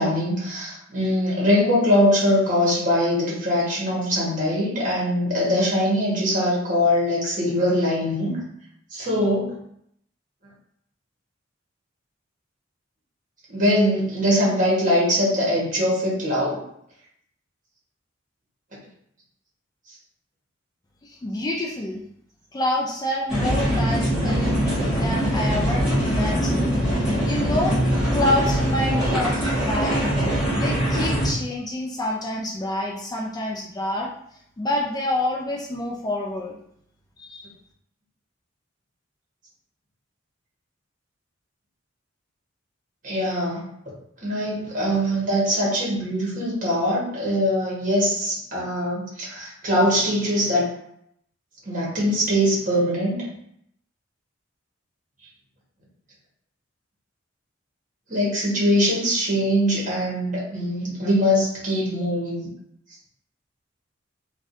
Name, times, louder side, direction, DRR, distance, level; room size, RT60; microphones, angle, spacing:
voice 1, 0.0-8.4 8.9-9.5 13.5-16.6 43.0-43.7 44.2-50.7 51.6-53.2 58.1-62.5, equal, 45° right, -5 dB, 1.3 m, -22 dB
voice 2, 21.0-22.0 22.5-24.6 24.8-26.7 27.0-27.8 28.1-30.0 30.5-34.1 34.6-36.6 37.2-37.5, left 1 dB, 20° left, -1 dB, 0.3 m, -27 dB
sound 1, 23.3-31.3, equal, 5° right, 1.4 m, -22 dB
3.5 x 2.3 x 2.6 m, 0.71 s
head